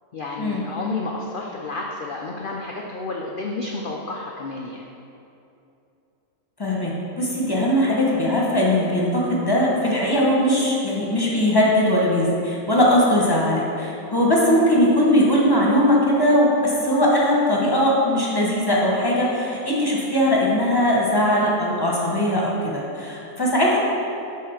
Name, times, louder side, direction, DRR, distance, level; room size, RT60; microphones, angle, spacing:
voice 1, 0.1-4.9, left 3 dB, 90° left, -1 dB, 0.4 m, -31 dB
voice 2, 6.6-23.8, left 1 dB, 20° left, -4 dB, 0.8 m, -20 dB
7.4 x 3.7 x 5.8 m, 2.7 s
omnidirectional pair, 1.6 m